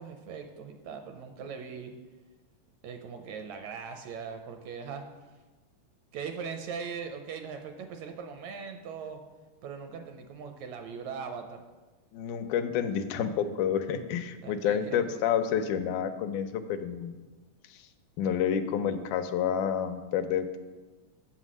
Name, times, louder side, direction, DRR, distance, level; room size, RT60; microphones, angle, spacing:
voice 1, 0.0-1.9 2.8-5.0 6.1-9.2 9.6-11.6 14.4-15.2, right 6 dB, 80° right, 5 dB, 1.7 m, -40 dB
voice 2, 12.1-17.2 18.2-20.6, left 8 dB, 80° left, 8 dB, 2.0 m, -29 dB
8.1 x 5.8 x 6.2 m, 1.3 s
omnidirectional pair, 3.5 m